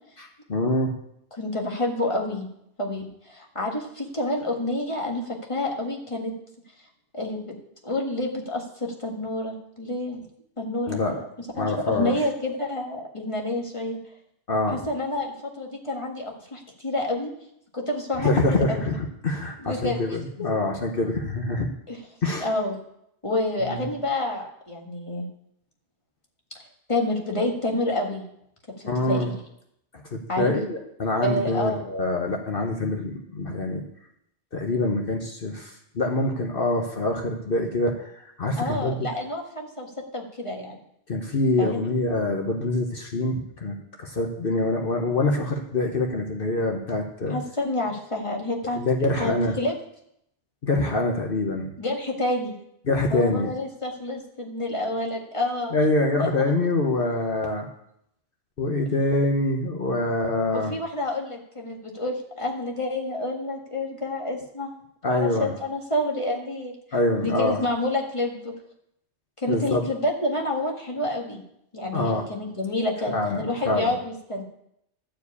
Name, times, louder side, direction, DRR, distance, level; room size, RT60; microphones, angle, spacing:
voice 1, 0.2-0.9 10.9-11.1 11.6-12.1 14.5-14.8 18.2-21.7 22.2-22.5 23.6-23.8 28.8-29.3 30.1-33.8 34.5-39.0 41.1-47.4 48.7-49.6 50.6-51.7 52.9-53.5 55.7-57.7 58.6-60.7 65.0-65.5 66.9-67.6 69.5-69.8 71.9-72.3 73.1-73.9, left 2 dB, 55° left, 2 dB, 1.2 m, -25 dB
voice 2, 1.3-2.5 2.8-6.3 7.1-7.5 7.8-10.2 10.6-11.3 11.6-14.0 14.7-17.3 17.7-18.9 19.6-20.0 20.4-20.5 21.9-22.0 22.4-22.8 23.2-25.3 26.9-28.2 29.0-29.3 30.3-30.5 31.2-31.9 38.6-40.8 41.6-41.8 47.3-48.8 49.2-49.8 51.8-52.5 53.1-55.8 56.2-56.3 60.5-64.7 65.1-66.8 67.2-68.5 69.4-71.4 71.7-74.4, left 1 dB, 25° left, 0 dB, 1.6 m, -28 dB
11.5 x 4.8 x 8.3 m, 0.75 s
omnidirectional pair, 1.2 m